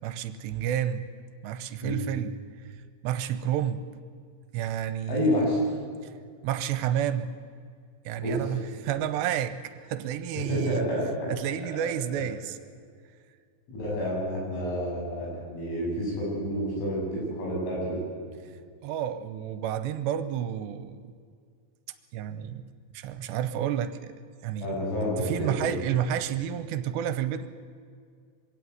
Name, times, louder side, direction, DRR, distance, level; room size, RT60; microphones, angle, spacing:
voice 1, 0.0-1.1 1.4-3.9 4.5-5.4 6.0-6.1 6.4-7.3 8.1-10.9 11.3-12.6 18.5-18.6 18.8-21.0 22.1-22.7 22.9-24.1 24.4-24.7 25.2-27.5, right 10 dB, 80° right, 12 dB, 2.8 m, -30 dB
voice 2, 5.1-5.6 8.2-8.5 10.5-11.3 12.1-12.2 13.7-18.0 24.6-25.8, equal, 85° left, -4 dB, 10.0 m, -29 dB
23.5 x 16.5 x 9.5 m, 2.1 s
omnidirectional pair, 5.3 m